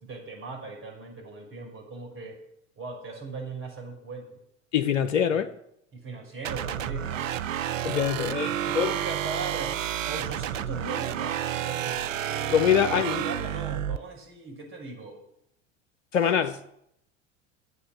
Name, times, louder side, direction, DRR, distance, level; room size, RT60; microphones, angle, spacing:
voice 1, 0.0-2.4 2.8-4.3 5.3-5.4 5.9-7.4 8.4-9.8 10.0-12.2 12.7-15.2, right 3 dB, 35° right, 5.7 m, -39 dB
voice 2, 4.7-5.5 7.8-8.9 12.5-13.2 16.1-16.6, left 8 dB, 80° left, 0.8 m, -24 dB
sound 1, 6.4-14.0, right 10 dB, 80° right, 0.7 m, -30 dB
11.0 x 8.1 x 6.6 m
hypercardioid pair, 80°, 38 cm